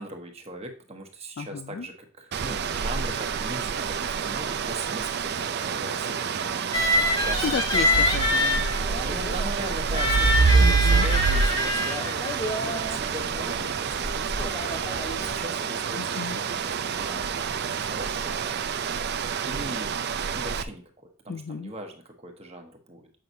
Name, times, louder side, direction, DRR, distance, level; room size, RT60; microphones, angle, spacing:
voice 1, 0.0-6.7 7.0-7.5 9.0-12.2 12.6-14.5 15.2-18.4 19.4-19.9 20.3-20.9 21.2-23.0, right 1 dB, 25° right, 1.2 m, -39 dB
voice 2, 1.4-1.9 7.2-8.7 10.6-11.1 16.0-16.4 21.3-21.7, left 6 dB, 50° left, 0.3 m, -33 dB
sound 1, 2.3-20.6, right 5 dB, 45° right, 0.4 m, -27 dB
sound 2, 6.7-15.4, left 1 dB, 20° left, 1.3 m, -27 dB
7.7 x 5.8 x 2.7 m
head